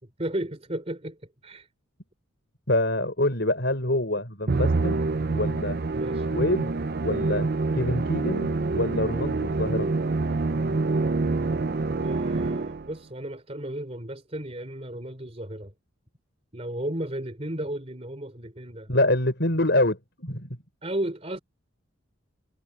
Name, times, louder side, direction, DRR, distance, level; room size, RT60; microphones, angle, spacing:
voice 1, 0.0-1.7 5.9-6.3 12.0-15.7 16.5-18.9 20.8-21.4, right 1 dB, 30° right, 3.5 m, -34 dB
voice 2, 2.7-5.0 5.3-5.8 6.3-6.7 7.0-7.5 7.7-8.5 8.7-9.9 18.9-20.5, left 1 dB, 55° left, 5.8 m, -25 dB
Musical instrument, 4.5-13.0, right 3 dB, 50° right, 0.6 m, -26 dB
head